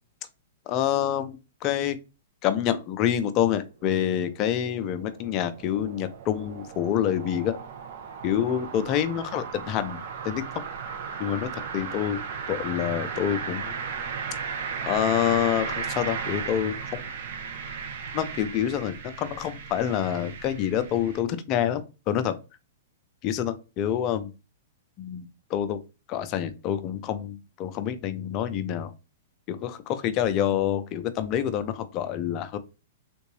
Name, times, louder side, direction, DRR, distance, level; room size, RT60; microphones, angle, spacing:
voice 1, 0.7-2.0 2.4-7.6 8.2-10.0 10.2-10.6 11.2-12.2 12.5-13.7 14.9-17.0 18.1-22.3 23.2-24.3 25.0-25.8 26.1-28.9 29.5-32.6, left 10 dB, 35° left, 0.5 m, -27 dB
sound 1, 3.7-21.2, right 6 dB, 60° right, 0.7 m, -36 dB
3.7 x 2.5 x 3.1 m
hypercardioid pair, 120°, 0 cm